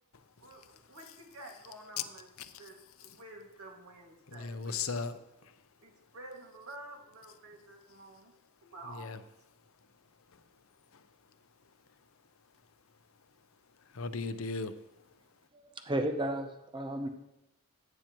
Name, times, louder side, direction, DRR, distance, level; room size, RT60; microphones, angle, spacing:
voice 1, 0.4-2.3 2.6-4.8 5.8-8.3 8.6-9.1, right 2 dB, 80° right, 1 dB, 2.1 m, -50 dB
voice 2, 4.3-5.5 8.9-9.2 10.9-11.0 13.9-14.7, left 4 dB, 65° left, 11 dB, 0.7 m, -37 dB
voice 3, 15.5-17.1, right 1 dB, 20° right, 6 dB, 0.7 m, -33 dB
15.0 x 8.8 x 3.0 m, 0.91 s
head